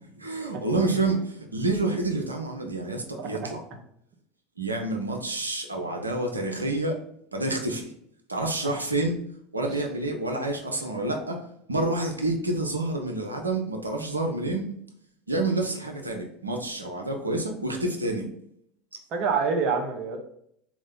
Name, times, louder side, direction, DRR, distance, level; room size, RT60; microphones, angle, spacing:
voice 1, 0.2-3.6 4.6-7.0 7.3-7.9 8.3-9.2 9.5-11.4 11.7-14.7 15.3-18.3, right 2 dB, 85° right, 2 dB, 0.6 m, -28 dB
voice 2, 3.2-3.5 8.6-8.7 9.6-9.7 19.1-20.2, right 5 dB, 45° right, 3 dB, 0.9 m, -27 dB
3.7 x 3.1 x 3.7 m, 0.71 s
figure-of-eight pair, 75°, 0 cm